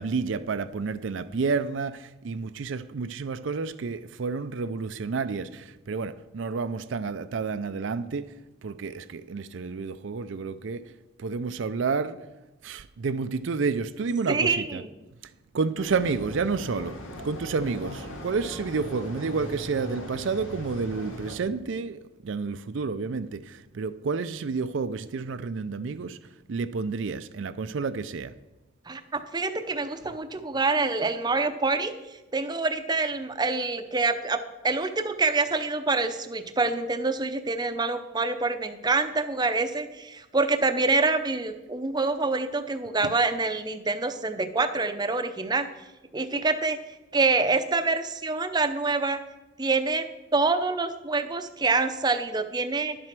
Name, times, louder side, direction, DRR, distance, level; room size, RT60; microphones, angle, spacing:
voice 1, 0.0-8.3 8.6-10.8 11.2-12.2 12.6-14.8 15.5-17.0 17.2-26.2 26.5-28.3 43.0-43.1, right 4 dB, 70° right, 0.5 m, -30 dB
voice 2, 14.3-14.9 28.9-45.7 46.1-46.8 47.1-49.2 49.6-50.0 50.3-53.0, right 3 dB, 20° right, 0.6 m, -26 dB
sound 1, 15.8-21.4, equal, 85° left, 2.1 m, -39 dB
11.0 x 7.6 x 5.9 m
head